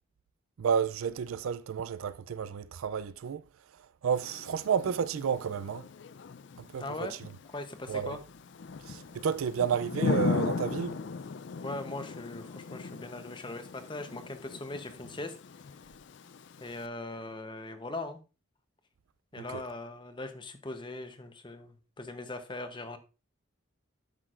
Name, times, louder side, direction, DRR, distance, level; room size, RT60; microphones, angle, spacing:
voice 1, 0.6-3.4 4.0-5.8 6.6-7.2 7.9-8.2 8.9-11.0 19.4-19.6, right 7 dB, 80° right, 0.4 m, -31 dB
Thunder / Rain, 4.1-16.9, left 4 dB, 55° left, 0.4 m, -38 dB
voice 2, 6.8-7.1 7.5-8.2 11.6-15.4 16.6-18.2 19.3-23.0, left 2 dB, 25° left, 0.8 m, -40 dB
12.0 x 5.9 x 2.5 m
head